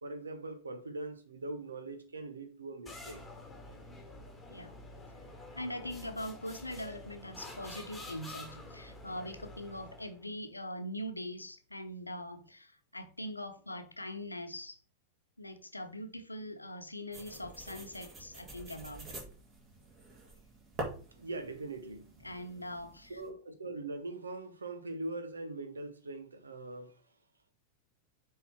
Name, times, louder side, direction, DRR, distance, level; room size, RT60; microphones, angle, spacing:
voice 1, 0.0-3.2 21.2-22.1 23.1-26.9, right 2 dB, 75° right, 1.1 m, -41 dB
sound 1, 2.9-10.3, left 2 dB, 10° left, 1.8 m, -48 dB
voice 2, 5.5-14.8 15.4-19.1 22.2-23.2, left 1 dB, 85° left, 0.9 m, -42 dB
sound 2, 17.1-23.3, right 2 dB, 25° right, 2.3 m, -46 dB
7.1 x 4.0 x 4.3 m
figure-of-eight pair, 90°, 0 cm